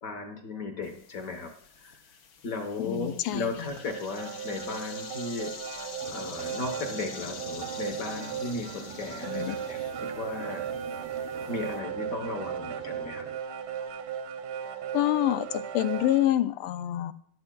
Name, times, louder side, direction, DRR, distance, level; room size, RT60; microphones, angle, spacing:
voice 1, 0.0-2.0 2.4-5.6 6.1-10.7 11.1-13.3, left 3 dB, 50° left, 5 dB, 1.3 m, -36 dB
sound 1, 0.8-11.8, left 6 dB, 70° left, 0.9 m, -46 dB
voice 2, 2.8-3.7 9.2-9.6 14.9-17.1, left 13 dB, 90° left, 13 dB, 1.5 m, -27 dB
sound 2, 3.7-16.3, right 8 dB, 70° right, 1.0 m, -36 dB
sound 3, 6.0-13.4, right 9 dB, 85° right, 1.5 m, -46 dB
12.5 x 11.0 x 2.3 m, 0.64 s
omnidirectional pair, 2.3 m